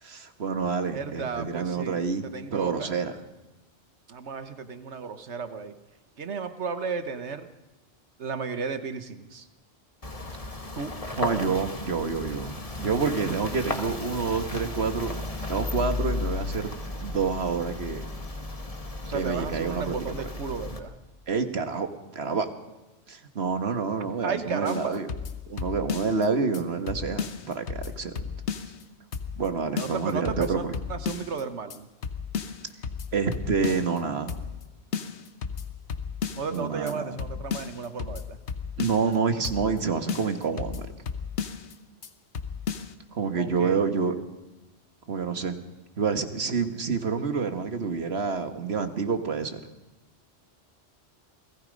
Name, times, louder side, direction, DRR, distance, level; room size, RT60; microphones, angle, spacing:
voice 1, 0.0-2.2 2.5-3.1 11.2-15.1 15.5-18.1 19.1-20.0 21.3-21.9 22.1-22.5 23.1-25.1 25.5-28.3 29.4-30.6 33.1-34.4 36.5-37.2 38.8-40.9 43.1-44.1 45.1-45.6 46.0-49.6, right 5 dB, 70° right, 8 dB, 1.8 m, -28 dB
voice 2, 0.6-2.9 4.1-5.7 6.2-7.5 8.2-9.5 10.7-11.0 19.0-20.9 24.2-25.0 29.7-31.9 36.3-38.4 43.3-44.3, right 5 dB, 85° right, 10 dB, 1.5 m, -34 dB
sound 1, 10.0-20.8, left 2 dB, 30° left, 1.8 m, -34 dB
sound 2, 24.7-26.3 26.5-26.6 26.9-28.8 29.1-29.5 29.8-31.4 31.7-34.0 34.3-34.6 34.9-36.6 36.9-37.0 37.2-39.2 39.4-39.8 40.1-41.7 42.0-42.1 42.3-42.9, left 6 dB, 85° left, 1.4 m, -34 dB
28.0 x 19.5 x 5.3 m, 1.1 s
omnidirectional pair, 1.1 m